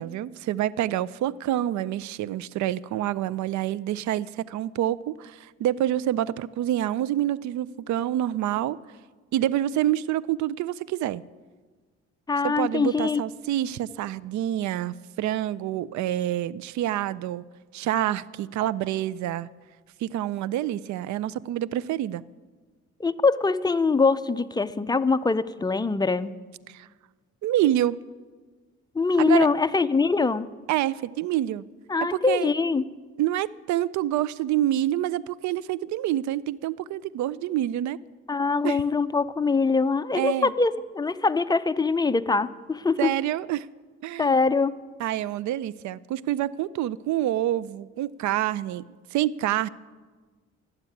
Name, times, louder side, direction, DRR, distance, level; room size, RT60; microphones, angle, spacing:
voice 1, 0.0-8.8 9.3-11.2 12.4-17.4 17.7-19.5 20.0-22.2 26.7-26.9 27.4-28.0 29.2-29.5 30.7-31.6 32.1-32.5 33.2-38.0 38.6-38.8 40.1-40.5 43.0-43.7 44.0-44.3 45.0-48.8 49.1-49.7, right 13 dB, 70° right, 20 dB, 0.5 m, -27 dB
voice 2, 12.3-13.2 23.0-26.3 29.0-30.5 31.9-32.8 38.3-43.1 44.2-44.8, left 4 dB, 15° left, 13 dB, 0.4 m, -23 dB
12.5 x 8.1 x 9.5 m, 1.4 s
cardioid pair, 90°, 30 cm